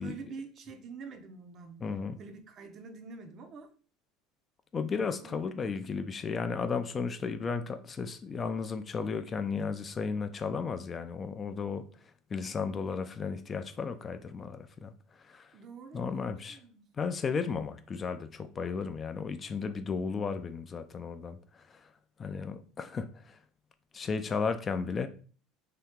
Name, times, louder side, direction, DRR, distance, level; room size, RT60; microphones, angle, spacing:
voice 1, 0.0-1.8 2.2-3.7 5.2-5.4 15.5-16.8, right 5 dB, 45° right, 0.6 m, -46 dB
voice 2, 1.8-2.2 4.7-11.8 12.3-14.9 15.2-15.5 15.9-16.6 17.0-21.9 22.2-23.4 23.9-25.1, left 5 dB, 30° left, 0.3 m, -34 dB
2.8 x 2.3 x 3.5 m
supercardioid pair, 100°, 0 cm